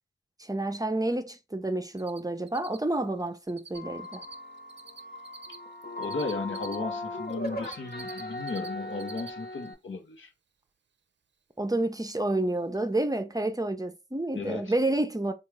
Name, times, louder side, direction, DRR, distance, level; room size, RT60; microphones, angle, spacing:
voice 1, 0.4-4.2 11.6-15.3, right 2 dB, 20° right, 0.5 m, -29 dB
Cricket, 2.0-2.2 2.5-6.8 7.3-8.7 8.9-9.3 9.7-9.8 12.3-12.4 12.7-12.8 13.0-13.1, right 5 dB, 65° right, 0.5 m, -45 dB
sound 1, 3.7-9.7, left 1 dB, 50° left, 0.9 m, -38 dB
voice 2, 6.0-10.3 14.4-14.7, left 3 dB, 85° left, 0.8 m, -35 dB
3.6 x 2.4 x 3.1 m
cardioid pair, 45°, 20 cm